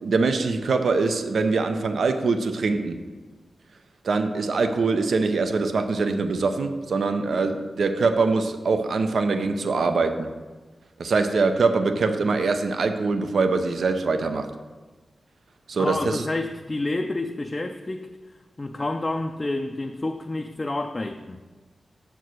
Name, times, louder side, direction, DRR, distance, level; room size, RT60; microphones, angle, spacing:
voice 1, 0.0-3.0 4.0-10.3 11.0-14.5 15.7-16.3, right 4 dB, 75° right, 8 dB, 0.5 m, -23 dB
voice 2, 15.8-18.1 18.6-21.4, left 2 dB, 30° left, 4 dB, 0.4 m, -29 dB
6.8 x 4.6 x 6.2 m, 1.3 s
wide cardioid pair, 90°, 0 cm